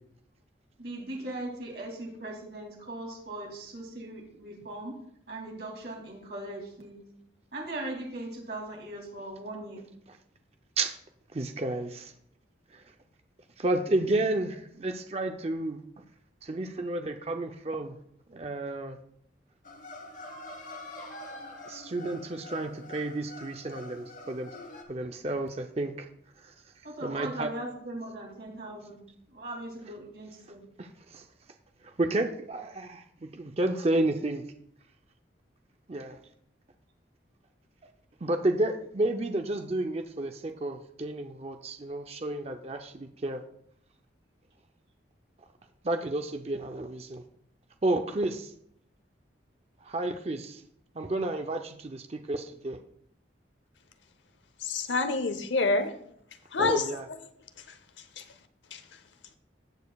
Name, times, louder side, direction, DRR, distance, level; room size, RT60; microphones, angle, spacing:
voice 1, 0.8-4.9 5.3-7.1 7.5-9.8 14.3-14.4 26.8-29.0 29.3-30.6, right 1 dB, 60° right, 2.6 m, -39 dB
voice 2, 11.3-12.1 12.7-12.8 13.6-15.8 16.4-18.0 18.3-19.0 21.7-24.5 24.9-26.1 26.4-26.5 27.0-27.5 30.8-31.2 31.8-34.4 35.9-36.2 38.2-43.4 45.8-47.2 47.8-48.5 49.8-50.6 50.9-52.8 56.6-57.0, right 2 dB, 35° right, 0.5 m, -31 dB
sound 1, 19.6-24.8, left 1 dB, 45° left, 1.0 m, -45 dB
voice 3, 54.6-55.9 56.5-57.0 57.7-57.8 58.2-58.3 58.7-58.8, left 3 dB, 80° left, 0.8 m, -27 dB
17.5 x 6.6 x 2.3 m
head